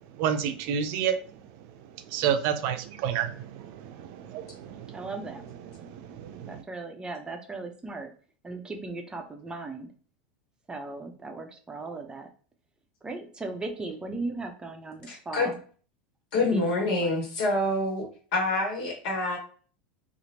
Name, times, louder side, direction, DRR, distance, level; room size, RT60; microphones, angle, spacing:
voice 1, 0.1-5.1 5.8-6.6, right 8 dB, 55° right, 8 dB, 0.5 m, -31 dB
voice 2, 4.9-5.4 6.5-8.1 8.4-9.9 10.7-12.3 13.0-15.6 16.5-17.2, right 3 dB, 15° right, 4 dB, 0.6 m, -37 dB
voice 3, 15.1-15.5 16.3-19.4, left 2 dB, 70° left, 1 dB, 1.3 m, -27 dB
2.9 x 2.5 x 2.8 m, 0.40 s
hypercardioid pair, 95°, 5 cm